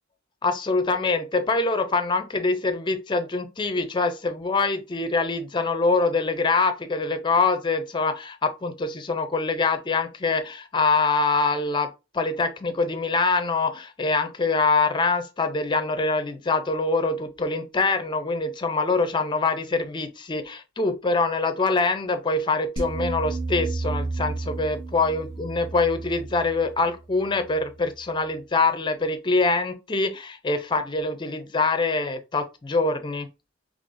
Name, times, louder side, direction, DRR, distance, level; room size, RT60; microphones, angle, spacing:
voice 1, 0.4-11.9 12.1-33.3, left 3 dB, 25° left, 0.5 m, -24 dB
sound 1, 22.8-28.0, right 3 dB, 45° right, 0.9 m, -32 dB
3.8 x 3.1 x 2.5 m
head